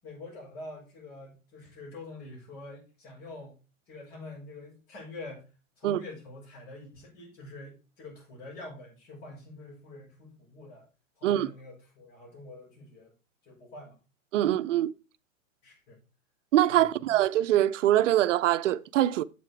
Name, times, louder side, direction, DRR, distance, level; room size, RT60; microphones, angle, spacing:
voice 1, 0.0-3.6 3.9-5.5 5.8-10.9 11.2-13.1 13.4-14.0 15.6-16.0 16.7-17.1, left 2 dB, 35° left, 6.0 m, -46 dB
voice 2, 14.3-14.9 16.5-19.2, right 13 dB, 65° right, 0.7 m, -23 dB
7.6 x 7.3 x 4.7 m
hypercardioid pair, 150°, 40 cm